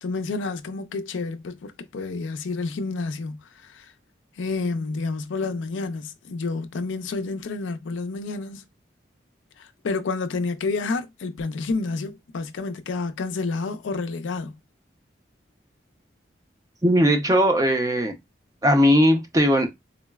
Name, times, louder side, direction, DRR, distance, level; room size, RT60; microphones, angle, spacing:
voice 1, 0.0-3.9 4.4-8.6 9.6-14.6, left 3 dB, 85° left, 0.4 m, -29 dB
voice 2, 16.8-18.1 18.6-19.7, equal, 20° right, 0.5 m, -18 dB
3.9 x 2.0 x 2.2 m
head